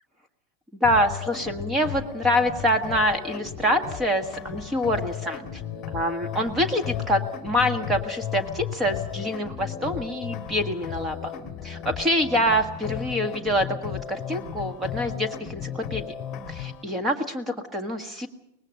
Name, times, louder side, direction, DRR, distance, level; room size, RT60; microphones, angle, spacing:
sound 1, 0.8-16.8, left 9 dB, 20° left, 1.9 m, -35 dB
voice 1, 0.8-5.6 5.9-11.3 11.6-16.1 16.5-18.3, equal, 10° right, 7 dB, 1.6 m, -26 dB
23.5 x 20.0 x 6.5 m, 0.84 s
supercardioid pair, 175°, 0 cm